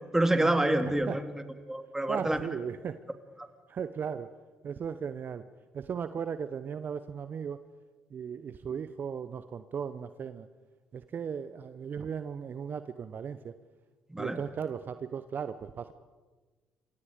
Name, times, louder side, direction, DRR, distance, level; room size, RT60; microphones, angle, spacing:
voice 1, 0.0-1.3 1.7-2.4 14.1-14.4, right 1 dB, 10° right, 8 dB, 2.4 m, -27 dB
voice 2, 0.8-1.2 2.1-3.0 3.7-4.3 4.6-5.4 5.7-7.6 8.1-10.5 10.9-13.5 14.2-15.9, right 7 dB, 50° right, 12 dB, 0.8 m, -36 dB
28.0 x 24.5 x 5.1 m, 1.3 s
hypercardioid pair, 50°, 4 cm